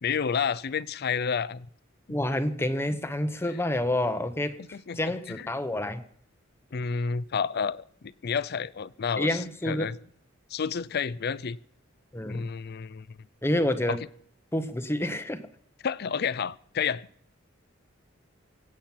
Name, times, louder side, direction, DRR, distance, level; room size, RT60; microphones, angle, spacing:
voice 1, 0.0-1.7 2.1-2.2 4.7-5.0 5.3-5.5 6.7-10.0 10.5-11.6 12.3-13.2 13.9-14.0 15.8-17.1, left 6 dB, 55° left, 18 dB, 0.5 m, -30 dB
voice 2, 2.1-4.6 5.0-6.0 9.2-9.9 12.1-12.5 13.4-14.0 14.5-15.5, left 1 dB, 15° left, 9 dB, 0.9 m, -28 dB
23.5 x 8.9 x 5.8 m, 0.62 s
head